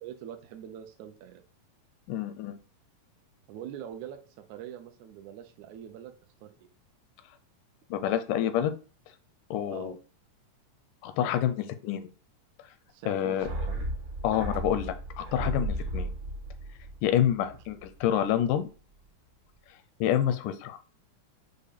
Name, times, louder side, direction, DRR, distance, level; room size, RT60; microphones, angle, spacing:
voice 1, 0.0-1.4 3.5-6.1 6.4-6.7 9.7-10.0 12.9-14.0 17.5-17.6, right 10 dB, 80° right, 5 dB, 1.7 m, -43 dB
voice 2, 2.1-2.6 7.9-8.7 9.5-9.9 11.0-12.1 13.1-13.5 14.2-16.1 17.0-18.7 20.0-20.8, left 10 dB, 85° left, 10 dB, 2.1 m, -28 dB
sound 1, 13.4-18.0 18.3-18.4, right 1 dB, 65° right, 0.7 m, -35 dB
6.4 x 2.1 x 3.5 m, 0.36 s
omnidirectional pair, 3.6 m